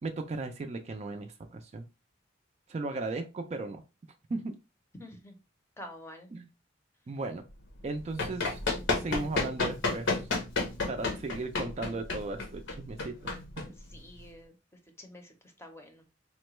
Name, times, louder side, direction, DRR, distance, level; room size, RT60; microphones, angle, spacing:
voice 1, 0.0-1.9 2.7-3.8 4.3-4.5 6.3-6.5 7.1-7.4 7.8-8.6 9.0-10.1 10.9-13.6, right 3 dB, 35° right, 6 dB, 0.4 m, -36 dB
voice 2, 5.0-5.4 5.8-6.3 13.9-14.5 15.0-15.3 15.6-16.0, left 1 dB, 15° left, 4 dB, 0.6 m, -47 dB
Run, 7.8-14.3, left 3 dB, 75° left, 0.8 m, -32 dB
3.7 x 2.2 x 3.0 m, 0.28 s
head